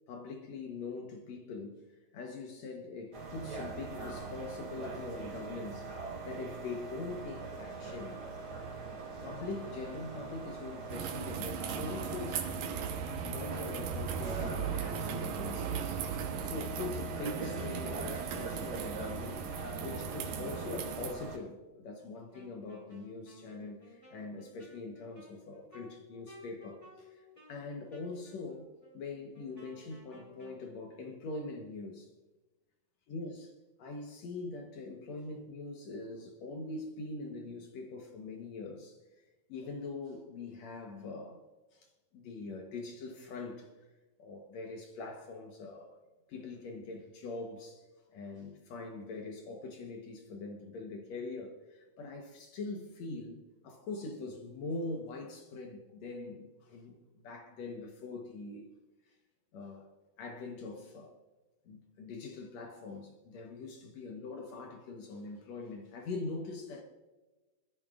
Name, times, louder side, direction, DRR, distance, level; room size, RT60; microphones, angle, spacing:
voice 1, 0.1-1.8 2.1-8.2 8.9-12.9 13.2-16.0 16.4-28.7 28.9-32.1 33.1-33.5 33.8-41.4 41.7-43.7 44.2-46.0 46.3-58.7 59.1-59.2 59.5-59.9 60.2-61.2 61.6-66.8, left 3 dB, 90° left, 1.5 m, -43 dB
sound 1, 3.1-21.4, right 4 dB, 35° right, 3.8 m, -42 dB
sound 2, 10.9-21.1, right 7 dB, 70° right, 2.3 m, -38 dB
Wind instrument woodwind instrument, 22.3-30.6, equal, 5° left, 2.7 m, -56 dB
22.0 x 14.0 x 2.4 m
omnidirectional pair, 4.8 m